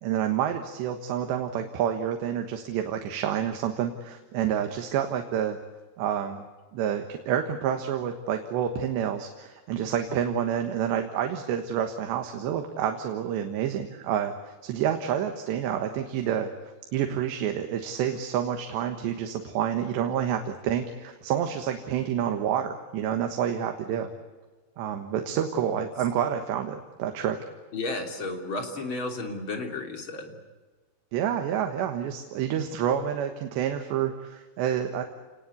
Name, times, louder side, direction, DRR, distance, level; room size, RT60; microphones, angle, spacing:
voice 1, 0.0-5.6 6.0-6.4 6.7-14.3 14.6-16.5 16.9-24.1 24.8-27.4 31.1-35.0, right 9 dB, 85° right, 5 dB, 3.6 m, -28 dB
voice 2, 27.7-30.4, left 2 dB, 30° left, 4 dB, 3.3 m, -33 dB
28.5 x 20.0 x 8.5 m, 1.3 s
omnidirectional pair, 4.9 m